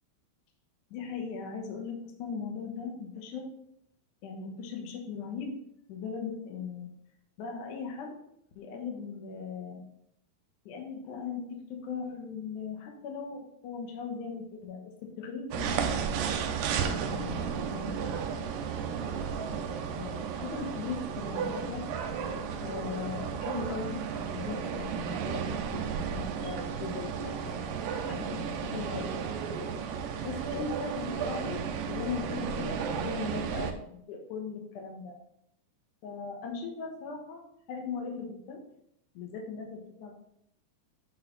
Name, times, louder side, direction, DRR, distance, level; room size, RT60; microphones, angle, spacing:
voice 1, 0.9-3.5 4.2-5.5 5.9-6.9 7.4-8.1 8.6-9.8 10.7-11.4 11.8-16.2 16.9-18.3 20.0-21.8 22.6-24.0 24.3-27.6 28.1-29.2 30.2-35.2 36.0-37.4 37.7-38.6 39.1-40.1, left 5 dB, 65° left, 1 dB, 2.2 m, -38 dB
sound 1, 15.5-33.7, right 7 dB, 80° right, 2.0 m, -33 dB
8.9 x 4.1 x 4.0 m, 0.74 s
omnidirectional pair, 4.7 m